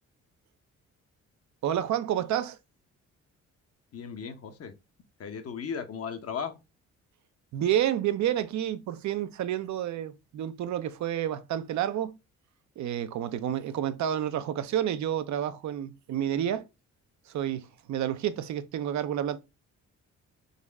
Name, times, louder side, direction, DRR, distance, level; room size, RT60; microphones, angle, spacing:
voice 1, 1.6-2.6 7.5-12.2 12.8-16.6 17.3-19.4, right 10 dB, 70° right, 0.7 m, -29 dB
voice 2, 3.9-4.7 5.2-6.6, left 6 dB, 50° left, 0.8 m, -36 dB
4.0 x 3.0 x 3.4 m
cardioid pair, 90°, 30 cm